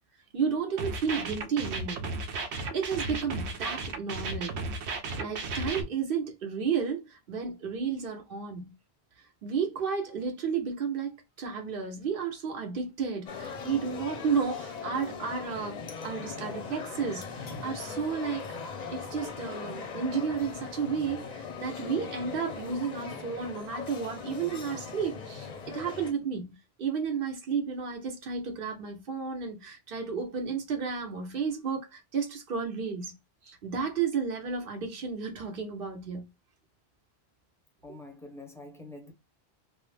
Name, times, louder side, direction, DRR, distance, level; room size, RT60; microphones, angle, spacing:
voice 1, 0.3-2.1 2.7-4.6 5.2-8.7 9.4-18.4 18.9-26.5 26.8-33.1 33.4-36.3, right 6 dB, 60° right, 1.1 m, -32 dB
sound 1, 0.8-5.8, right 3 dB, 85° right, 0.9 m, -34 dB
sound 2, 13.3-26.1, left 5 dB, 50° left, 0.6 m, -40 dB
voice 2, 37.8-39.1, left 2 dB, 5° left, 0.5 m, -46 dB
3.1 x 2.0 x 3.2 m
omnidirectional pair, 1.1 m